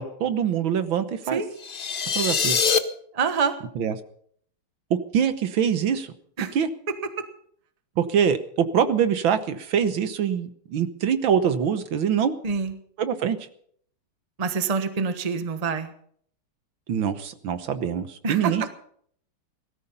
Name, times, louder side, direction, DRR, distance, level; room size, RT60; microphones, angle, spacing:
voice 1, 0.0-1.4 2.2-2.6 3.8-3.9 4.9-6.1 6.5-6.7 8.0-12.4 13.0-13.4 16.9-18.7, right 8 dB, 70° right, 11 dB, 1.8 m, -24 dB
sound 1, 1.6-2.8, left 5 dB, 90° left, 0.4 m, -23 dB
voice 2, 3.1-3.5 6.4-6.5 12.4-12.7 14.4-15.9 18.2-18.7, right 5 dB, 25° right, 9 dB, 1.0 m, -26 dB
18.0 x 14.0 x 5.6 m, 0.62 s
omnidirectional pair, 2.3 m